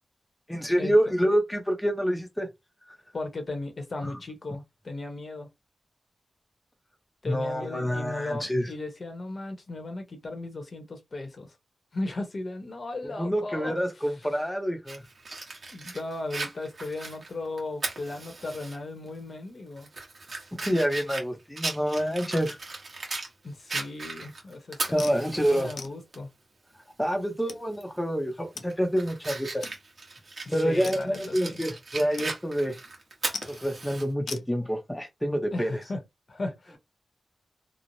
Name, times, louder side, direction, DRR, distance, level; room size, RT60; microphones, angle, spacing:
voice 1, 0.5-2.5 4.0-4.2 7.3-8.7 13.2-15.0 20.6-22.6 24.9-25.7 27.0-29.7 30.5-32.8 33.5-35.7, equal, 10° left, 0.6 m, -27 dB
voice 2, 3.1-5.5 7.2-11.5 11.9-13.8 14.0-14.1 15.7-19.9 23.4-26.3 30.6-31.6 35.5-36.0 36.3-36.8, left 2 dB, 50° left, 0.8 m, -36 dB
Fire, 14.9-18.8 19.1-19.2 19.8-23.3 23.7-25.7 26.1-26.2 27.7-28.0 28.4-34.0, right 3 dB, 50° right, 1.0 m, -37 dB
sound 1, 25.0-25.2 25.8-26.0 26.8-26.9 27.5-27.6 28.6-28.7 29.0-29.1 29.6-29.8 30.2-30.3 30.9-31.3 32.2-32.3 32.6-32.9 33.3-33.7 34.3-34.5, left 5 dB, 85° left, 0.4 m, -40 dB
3.0 x 2.0 x 2.6 m
wide cardioid pair, 90°, 0 cm